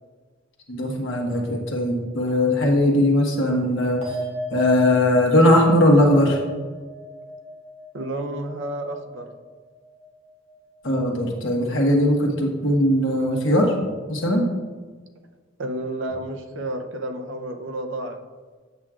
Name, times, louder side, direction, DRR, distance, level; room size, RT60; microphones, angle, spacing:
voice 1, 0.7-4.0 4.5-6.4 10.8-13.7 14.1-14.4, left 1 dB, 65° left, 0 dB, 1.2 m, -19 dB
sound 1, 4.0-10.7 11.0-11.6, left 1 dB, 35° right, 2.0 m, -36 dB
voice 2, 7.9-9.3 15.6-18.2, right 1 dB, 70° right, 5 dB, 0.7 m, -31 dB
8.1 x 7.1 x 2.4 m, 1.4 s
head